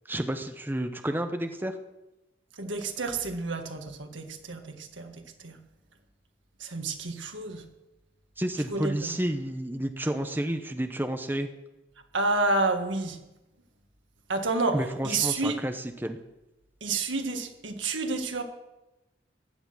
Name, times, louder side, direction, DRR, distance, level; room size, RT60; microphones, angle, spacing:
voice 1, 0.1-1.8 8.4-11.5 14.7-16.2, right 1 dB, 10° right, 6 dB, 0.8 m, -30 dB
voice 2, 2.6-5.1 5.4-5.6 6.6-7.6 8.7-9.1 12.1-13.2 14.3-15.6 16.8-18.4, right 3 dB, 85° right, 5 dB, 1.7 m, -29 dB
15.5 x 10.5 x 6.1 m, 0.98 s
head